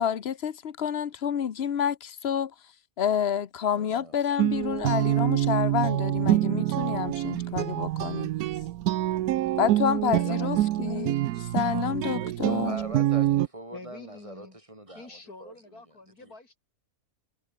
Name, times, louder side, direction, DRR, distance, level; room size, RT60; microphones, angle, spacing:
voice 1, 0.0-2.5 3.0-8.3 9.6-12.8, left 8 dB, 50° left, 1.1 m, -29 dB
voice 2, 3.7-4.2 9.4-9.6 12.1-16.3, right 1 dB, 20° right, 4.1 m, -43 dB
Guitar, 4.4-13.5, right 14 dB, 85° right, 1.2 m, -26 dB
voice 3, 10.1-11.2 13.7-14.6 14.9-16.6, left 2 dB, 85° left, 5.8 m, -45 dB
omnidirectional pair, 1.5 m